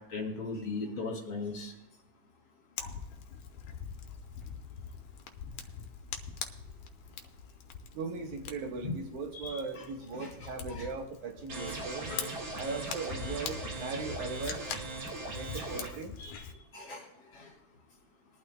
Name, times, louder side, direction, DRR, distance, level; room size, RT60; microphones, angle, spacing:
voice 1, 0.1-1.7 2.8-2.9 8.8-8.9 9.4-9.6 10.1-10.3 10.7-10.9 11.7-11.8 12.1-12.3 16.2-16.4 16.7-17.0 17.3-17.5, left 3 dB, 45° left, 0 dB, 2.7 m, -38 dB
Fire, 2.8-16.5, left 7 dB, 80° left, 2.2 m, -44 dB
voice 2, 7.9-12.1 12.5-14.6 15.3-16.1, right 4 dB, 80° right, 4 dB, 2.7 m, -38 dB
sound 1, 11.5-15.9, right 2 dB, 55° right, 3.3 m, -39 dB
21.0 x 11.5 x 2.2 m, 0.94 s
omnidirectional pair, 3.4 m